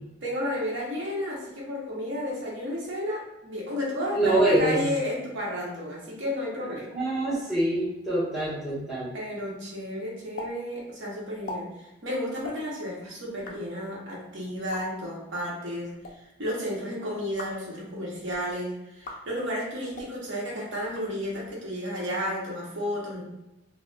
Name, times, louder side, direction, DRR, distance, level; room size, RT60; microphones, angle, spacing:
voice 1, 0.2-6.9 9.1-23.2, equal, 60° right, -4 dB, 0.9 m, -32 dB
voice 2, 4.1-4.8 6.9-9.1, right 1 dB, 5° right, -12 dB, 0.8 m, -25 dB
sound 1, 10.4-10.5 10.8-10.9 11.3-11.6 12.4-12.6 13.3-13.6 14.5-14.8 15.8-16.1 17.2-17.6 18.1-18.5 19.0-19.2 19.9-20.1 20.8-21.5, left 2 dB, 40° left, 0.4 m, -41 dB
3.9 x 2.1 x 2.3 m, 0.95 s
head